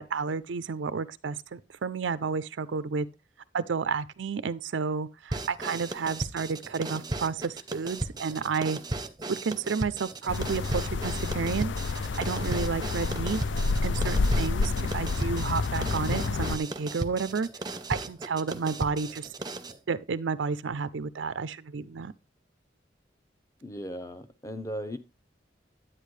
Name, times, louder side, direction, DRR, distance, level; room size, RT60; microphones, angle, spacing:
voice 1, 0.0-3.1 3.5-8.8 9.3-13.4 13.8-17.5 17.9-19.3 19.9-22.1, right 5 dB, 80° right, 0.5 m, -31 dB
sound 1, 5.3-19.8, right 2 dB, 20° right, 0.7 m, -36 dB
sound 2, 10.3-16.6, left 3 dB, 75° left, 0.5 m, -29 dB
voice 2, 23.6-25.0, equal, 15° left, 0.9 m, -37 dB
10.0 x 8.9 x 3.2 m
head